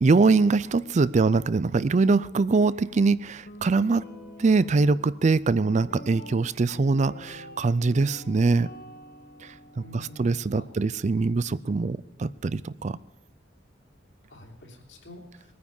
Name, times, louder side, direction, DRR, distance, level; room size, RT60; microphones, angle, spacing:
voice 1, 0.0-4.0 4.4-8.7 9.4-13.0, right 3 dB, 40° right, 18 dB, 0.4 m, -23 dB
Guitar, 3.5-11.6, left 1 dB, 55° left, 1.5 m, -47 dB
voice 2, 9.7-10.7 14.3-15.4, left 1 dB, 80° left, 0 dB, 3.1 m, -47 dB
20.5 x 9.6 x 5.4 m, 1.1 s
head